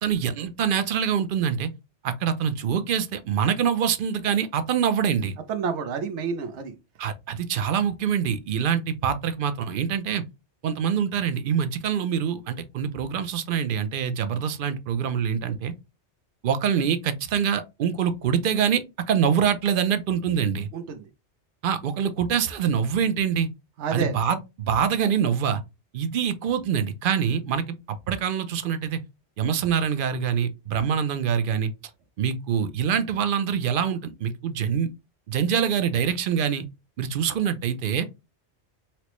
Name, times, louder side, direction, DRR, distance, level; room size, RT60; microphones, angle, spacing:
voice 1, 0.0-1.7 2.0-5.4 7.0-10.2 10.6-15.7 16.4-20.7 21.6-23.5 23.9-25.6 25.9-29.0 29.4-31.7 32.2-34.9 35.3-36.7 37.0-38.0, right 7 dB, 60° right, 0.6 m, -25 dB
voice 2, 5.5-6.8 20.7-21.0 23.8-24.1, right 5 dB, 85° right, 0.9 m, -29 dB
4.4 x 2.0 x 2.9 m
omnidirectional pair, 1.2 m